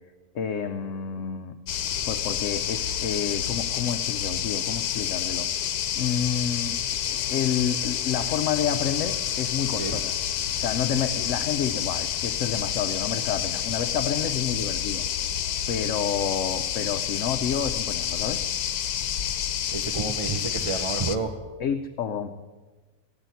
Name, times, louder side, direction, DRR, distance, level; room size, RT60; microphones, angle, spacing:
voice 1, 0.3-1.6 2.1-10.1 10.6-15.0 15.7-18.4 21.6-22.3, left 7 dB, 60° left, 8 dB, 1.0 m, -29 dB
sound 1, 1.7-21.2, left 9 dB, 85° left, 1.3 m, -29 dB
voice 2, 19.7-21.5, right 4 dB, 30° right, 5 dB, 0.7 m, -30 dB
17.0 x 9.0 x 9.3 m, 1.3 s
omnidirectional pair, 1.6 m